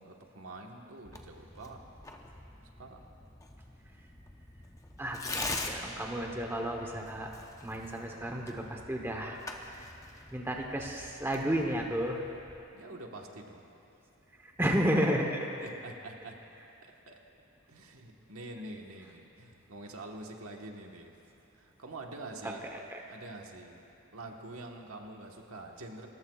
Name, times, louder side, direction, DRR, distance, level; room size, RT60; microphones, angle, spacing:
voice 1, 0.0-1.8 2.8-3.0 12.7-13.7 15.6-16.4 16.8-17.2 17.7-21.1 21.5-22.7 23.1-23.8 24.1-26.1, right 2 dB, 85° right, 1 dB, 1.4 m, -46 dB
Tearing, 1.0-12.6, left 2 dB, 15° left, 0.8 m, -44 dB
voice 2, 5.0-7.3 7.6-9.4 9.8-9.9 10.3-12.2 14.6-15.5 22.4-22.5 22.9-23.0, equal, 10° right, 1 dB, 1.0 m, -32 dB
29.5 x 14.5 x 2.4 m, 2.9 s
head